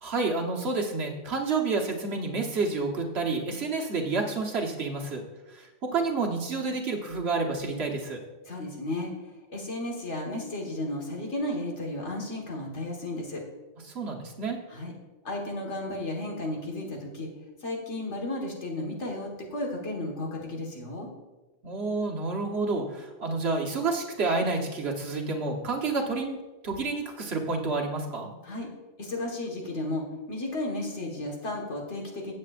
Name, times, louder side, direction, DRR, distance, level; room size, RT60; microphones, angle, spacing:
voice 1, 0.0-5.2 5.5-8.2 13.9-14.6 21.6-26.4 26.6-28.3, right 3 dB, 60° right, 1 dB, 1.4 m, -29 dB
voice 2, 8.5-13.4 14.7-14.9 15.2-17.3 17.6-21.1 28.4-28.7 29.0-32.3, left 1 dB, 70° left, 0 dB, 1.9 m, -34 dB
15.5 x 7.6 x 2.5 m, 1.1 s
omnidirectional pair, 1.2 m